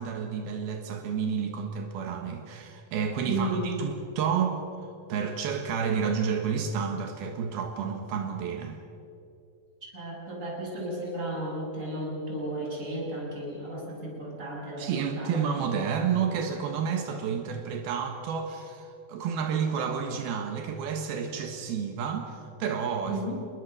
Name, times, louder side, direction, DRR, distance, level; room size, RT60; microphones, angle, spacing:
voice 1, 0.0-8.8 14.8-23.3, right 6 dB, 80° right, 5 dB, 3.4 m, -30 dB
voice 2, 3.2-3.8 9.9-15.4 23.1-23.4, right 1 dB, 20° right, -3 dB, 6.7 m, -34 dB
28.0 x 21.0 x 6.7 m, 2.6 s
omnidirectional pair, 4.4 m